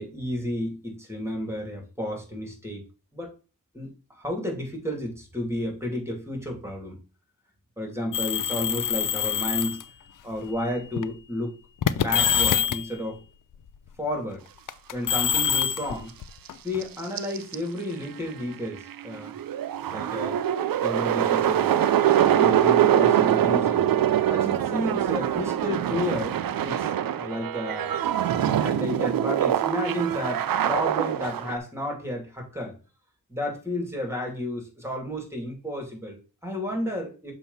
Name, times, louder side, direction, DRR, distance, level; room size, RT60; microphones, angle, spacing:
voice 1, 0.0-2.8 3.1-3.3 3.7-7.0 7.8-9.8 10.2-11.5 11.9-13.2 14.0-14.4 14.9-16.1 16.6-19.3 19.9-20.4 20.8-21.7 22.1-23.9 24.3-26.4 26.6-26.9 27.1-28.0 28.5-32.8 33.3-37.3, left 1 dB, 10° right, 1 dB, 2.7 m, -32 dB
sound 1, 8.1-9.8 10.7-11.0 11.8-12.9 14.7-16.8, left 9 dB, 70° left, 0.5 m, -25 dB
sound 2, 16.5-16.6 16.8-17.6 18.0-18.1 18.3-31.6, right 10 dB, 90° right, 0.5 m, -24 dB
6.9 x 3.0 x 5.5 m, 0.35 s
cardioid pair, 45°, 33 cm